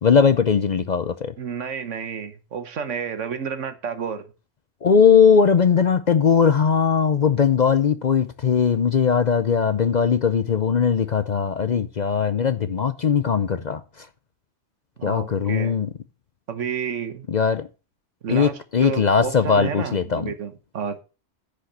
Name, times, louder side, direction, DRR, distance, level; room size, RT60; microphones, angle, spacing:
voice 1, 0.0-1.3 4.8-14.1 15.0-15.9 17.3-17.7 18.3-20.3, left 6 dB, 50° left, 0.6 m, -19 dB
voice 2, 1.4-4.2 15.0-15.7 16.5-17.2 18.2-21.0, right 7 dB, 80° right, 1.4 m, -30 dB
10.0 x 5.0 x 6.6 m
omnidirectional pair, 1.2 m